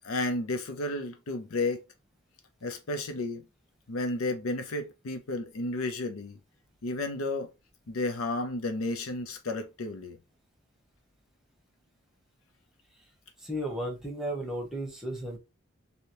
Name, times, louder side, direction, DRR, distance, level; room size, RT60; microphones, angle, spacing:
voice 1, 0.0-1.8 2.6-3.5 3.9-6.4 6.8-7.5 7.9-10.2, left 2 dB, 90° left, 0.6 m, -32 dB
voice 2, 13.4-15.4, right 1 dB, ahead, 0.9 m, -34 dB
2.9 x 2.7 x 3.0 m
head